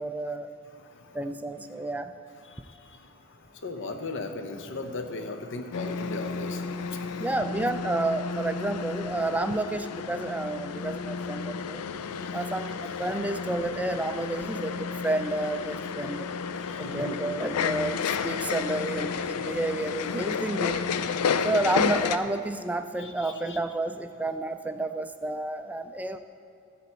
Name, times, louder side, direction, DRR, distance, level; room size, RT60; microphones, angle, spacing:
voice 1, 0.0-0.5 1.1-2.2 7.2-11.8 12.3-16.3 16.8-20.8 21.4-26.2, right 2 dB, 5° right, 9 dB, 0.3 m, -30 dB
voice 2, 0.7-1.3 1.8-1.9 2.3-7.4 11.9-12.4 12.8-13.0 16.5-17.2 18.3-18.4 21.2-21.5 23.0-23.6, left 3 dB, 55° left, 6 dB, 0.7 m, -39 dB
sound 1, 5.7-22.2, left 6 dB, 80° left, 0.4 m, -31 dB
12.5 x 4.3 x 8.2 m, 2.7 s
head